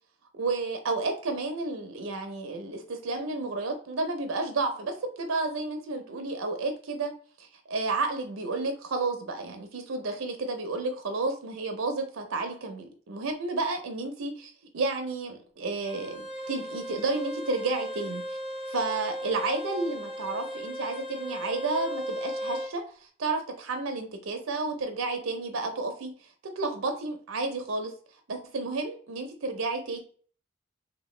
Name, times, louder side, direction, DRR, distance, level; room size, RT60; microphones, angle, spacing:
voice 1, 0.3-7.1 7.4-18.4 18.7-22.8 23.2-26.1 26.6-27.9 28.3-30.0, right 3 dB, 90° right, 5 dB, 0.6 m, -31 dB
Bowed string instrument, 15.8-22.7, equal, 30° left, 0.8 m, -36 dB
2.8 x 2.2 x 3.1 m, 0.44 s
head